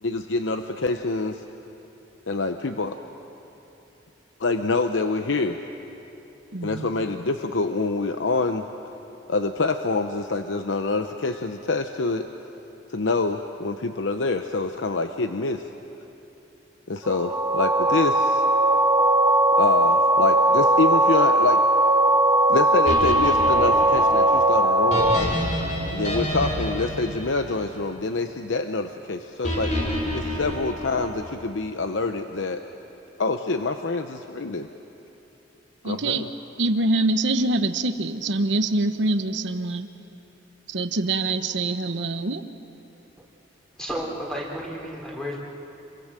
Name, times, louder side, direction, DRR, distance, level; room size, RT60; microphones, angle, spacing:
voice 1, 0.0-1.4 2.3-3.0 4.4-5.6 6.6-8.6 9.3-12.3 12.9-15.6 16.9-18.4 19.6-21.6 22.5-25.3 25.9-29.7 30.1-32.6 33.2-34.7 35.8-36.3, left 3 dB, 75° left, 7 dB, 0.8 m, -26 dB
voice 2, 6.5-7.0 35.8-36.3 36.6-39.9 40.7-42.4, right 2 dB, 70° right, 9 dB, 1.1 m, -25 dB
sound 1, 17.0-25.2, right 1 dB, 20° right, 1.2 m, -19 dB
sound 2, 22.9-28.2 29.4-31.4, equal, 40° left, 5.2 m, -29 dB
voice 3, 43.8-45.4, equal, 5° left, -1 dB, 3.6 m, -32 dB
26.5 x 23.5 x 7.5 m, 2.9 s
head